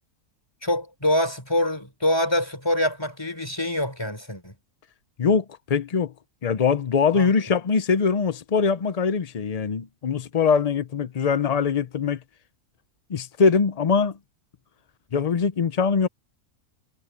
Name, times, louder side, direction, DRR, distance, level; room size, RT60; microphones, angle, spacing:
voice 1, 0.6-4.5 7.1-7.3, left 1 dB, 15° left, 4.4 m, -25 dB
voice 2, 5.2-6.1 6.4-12.2 13.1-14.2 15.1-16.1, left 5 dB, 75° left, 0.3 m, -22 dB
omnidirectional pair, 1.6 m